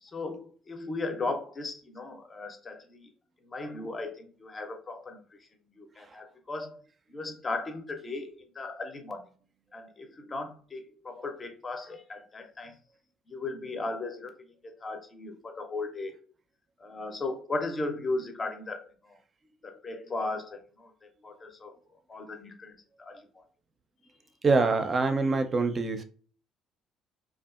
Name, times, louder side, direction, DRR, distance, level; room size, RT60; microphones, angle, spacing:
voice 1, 0.0-3.1 3.4-5.2 5.8-6.8 7.1-9.2 9.7-12.7 13.3-14.3 14.6-16.1 16.8-19.2 19.6-21.7 22.1-23.4, left 3 dB, 35° left, 6 dB, 0.6 m, -36 dB
voice 2, 24.4-26.0, right 3 dB, 40° right, 8 dB, 0.4 m, -25 dB
2.6 x 2.3 x 2.4 m, 0.43 s
hypercardioid pair, 55°, 0 cm